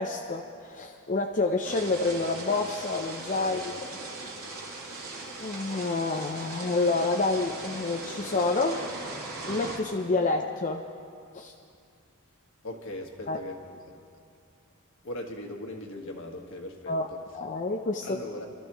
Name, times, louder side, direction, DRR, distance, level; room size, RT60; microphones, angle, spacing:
voice 1, 0.0-3.6 5.4-8.9 9.5-10.9 11.3-11.5 13.3-13.4 16.9-17.1 17.3-18.2, left 3 dB, 35° left, 1 dB, 0.6 m, -28 dB
sound 1, 1.6-9.8, right 3 dB, 75° right, 3.1 m, -39 dB
voice 2, 12.6-13.6 15.0-17.2 18.0-18.5, left 1 dB, 60° left, 2 dB, 1.6 m, -39 dB
28.5 x 13.0 x 3.1 m, 2.4 s
head